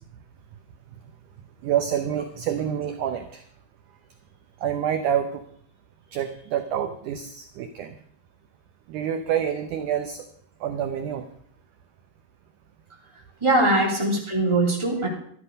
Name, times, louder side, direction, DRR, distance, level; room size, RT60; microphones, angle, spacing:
voice 1, 1.6-3.4 4.6-5.4 6.1-7.9 8.9-10.2 10.6-11.3, right 9 dB, 75° right, 7 dB, 1.9 m, -27 dB
voice 2, 13.4-15.1, right 2 dB, 10° right, -1 dB, 2.6 m, -21 dB
12.5 x 12.0 x 5.4 m, 0.64 s
omnidirectional pair, 4.3 m